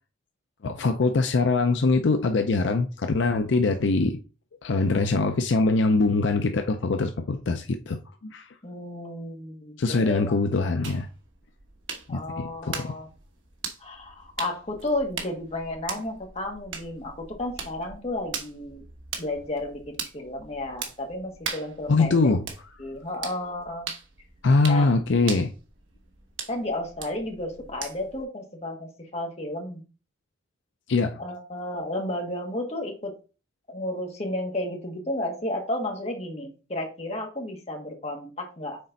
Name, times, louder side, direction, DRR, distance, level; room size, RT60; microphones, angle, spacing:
voice 1, 0.6-4.2 4.6-8.5 9.8-11.1 12.1-13.0 21.9-22.4 24.4-25.5 30.9-31.2, left 3 dB, 70° left, 0.5 m, -23 dB
voice 2, 8.6-10.4 12.1-13.1 13.8-18.8 19.2-22.3 22.8-23.9 24.7-24.9 26.5-29.8 31.2-33.1 33.7-38.8, left 1 dB, 35° left, 1.5 m, -32 dB
sound 1, 10.8-28.2, right 6 dB, 85° right, 1.2 m, -40 dB
6.6 x 4.3 x 3.9 m
head